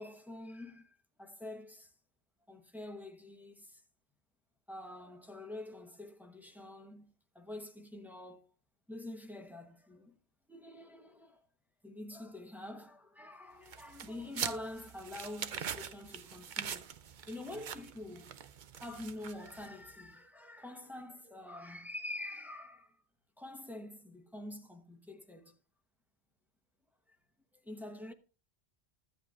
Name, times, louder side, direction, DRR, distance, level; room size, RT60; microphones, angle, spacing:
voice 1, 0.0-1.9 2.5-3.8 4.7-8.5 8.9-10.2 10.5-11.4 11.8-16.9 17.3-18.4 18.8-23.0 23.4-25.6 27.5-28.1, left 1 dB, ahead, 0.9 m, -46 dB
sound 1, 13.7-19.9, right 8 dB, 55° right, 0.7 m, -43 dB
15.0 x 8.1 x 2.4 m
omnidirectional pair, 1.1 m